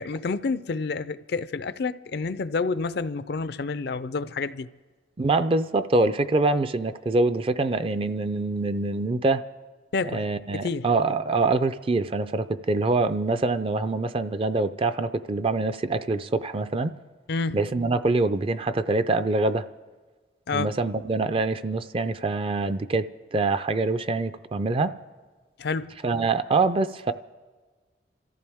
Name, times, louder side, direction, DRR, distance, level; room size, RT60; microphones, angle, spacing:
voice 1, 0.0-4.7 9.9-10.3 10.5-10.9 17.3-17.6 20.5-20.7 25.6-25.9, left 4 dB, 65° left, 0.5 m, -29 dB
voice 2, 5.2-9.4 10.0-16.9 17.5-19.7 20.5-25.0 26.0-27.1, right 3 dB, 30° right, 0.4 m, -25 dB
26.5 x 14.5 x 3.5 m
head